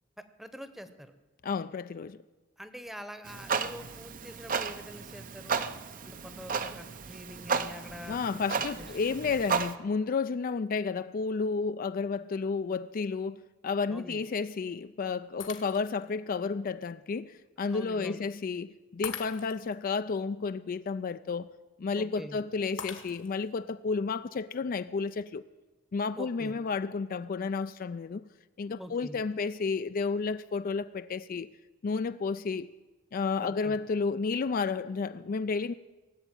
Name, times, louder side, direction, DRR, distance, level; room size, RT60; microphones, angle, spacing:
voice 1, 0.2-1.1 2.6-5.7 6.0-8.9 13.9-14.2 17.6-18.2 21.9-22.4 26.2-26.5 28.7-29.2 33.4-33.7, equal, ahead, 0.9 m, -45 dB
voice 2, 1.4-2.2 8.1-21.5 21.8-25.4 25.9-28.2 28.6-31.5 31.8-32.7 33.1-35.7, left 4 dB, 50° left, 0.4 m, -31 dB
Clock, 3.2-9.7, right 5 dB, 45° right, 0.7 m, -34 dB
Shatter, 15.4-16.1 16.7-16.8 19.0-19.8 22.8-23.5, left 7 dB, 75° left, 1.5 m, -42 dB
18.0 x 8.0 x 8.9 m
head